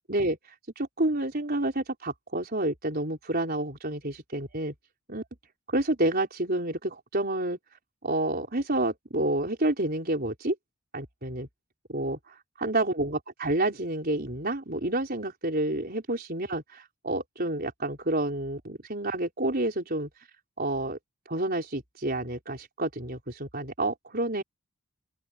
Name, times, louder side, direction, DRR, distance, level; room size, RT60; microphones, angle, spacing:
voice 1, 0.8-4.7 5.1-5.2 5.7-7.6 8.0-10.5 10.9-11.5 11.9-12.3 12.6-20.1 20.6-21.0 21.3-24.4, right 1 dB, 45° right, 4.8 m, -29 dB
open air
head